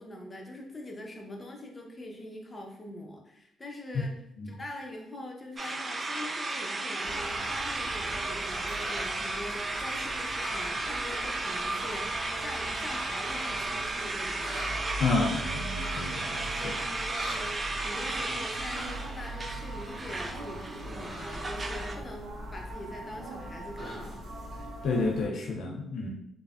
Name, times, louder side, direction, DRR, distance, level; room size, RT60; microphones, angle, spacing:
voice 1, 0.0-4.1 4.5-14.6 16.5-24.2, left 1 dB, 25° left, 1 dB, 0.6 m, -43 dB
sound 1, 5.6-22.0, right 2 dB, 30° right, 0.3 m, -34 dB
sound 2, 7.0-25.3, right 1 dB, 55° right, 0.7 m, -41 dB
sound 3, 8.8-9.0 10.4-10.6 11.7-11.9 12.2-12.3 13.3-13.5 14.4-14.7 15.7-16.0 17.1-17.4 18.7-18.9 21.0-21.3 23.8-24.0, equal, ahead, 1.2 m, -41 dB
voice 2, 15.0-16.6 24.8-26.1, left 3 dB, 70° left, 0 dB, 0.4 m, -30 dB
3.2 x 2.0 x 2.4 m, 0.74 s
cardioid pair, 75°, 0 cm